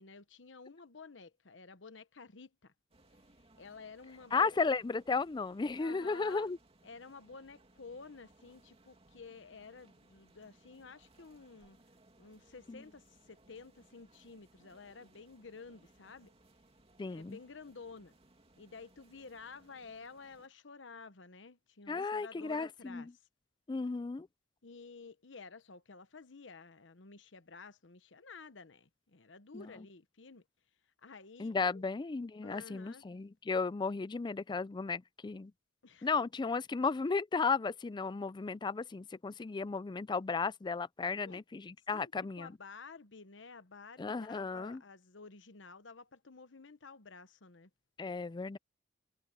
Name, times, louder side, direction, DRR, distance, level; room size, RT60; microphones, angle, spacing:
voice 1, 0.0-2.7 3.6-4.5 5.8-6.5 6.8-11.8 12.2-16.3 17.1-18.1 18.6-23.1 24.6-30.4 31.0-31.8 32.4-33.0 35.8-36.1 41.1-41.4 41.9-47.7, left 4 dB, 80° left, 1.1 m, -52 dB
sound 1, 2.9-20.5, right 2 dB, 35° right, 2.7 m, -65 dB
voice 2, 4.3-6.6 12.7-12.8 17.0-17.4 21.9-23.1 23.7-24.3 29.5-29.7 31.4-35.5 36.0-42.5 44.0-44.8 48.0-48.6, left 4 dB, 25° left, 0.4 m, -34 dB
head